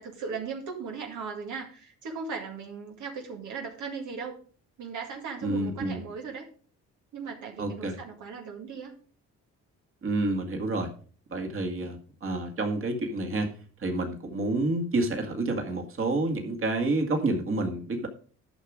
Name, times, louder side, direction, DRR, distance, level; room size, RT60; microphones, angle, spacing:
voice 1, 0.0-4.4 4.8-6.5 7.1-8.9, right 5 dB, 75° right, 1 dB, 2.0 m, -37 dB
voice 2, 5.4-6.0 7.6-8.0 10.0-10.9 11.3-13.5 13.8-18.1, right 2 dB, 45° right, 4 dB, 2.1 m, -29 dB
11.0 x 6.0 x 5.0 m, 0.42 s
cardioid pair, 90°, 30 cm